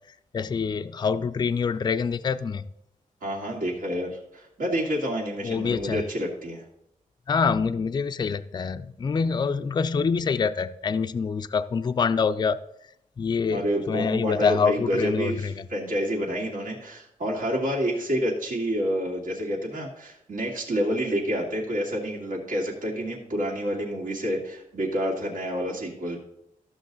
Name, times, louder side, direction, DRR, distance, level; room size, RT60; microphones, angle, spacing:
voice 1, 0.3-2.7 5.4-6.0 7.3-12.6 13.2-15.5, left 5 dB, 30° left, 11 dB, 0.3 m, -25 dB
voice 2, 3.2-6.6 13.5-26.2, equal, 80° right, -3 dB, 2.3 m, -28 dB
13.5 x 6.3 x 4.0 m, 0.78 s
wide cardioid pair, 135°, 14 cm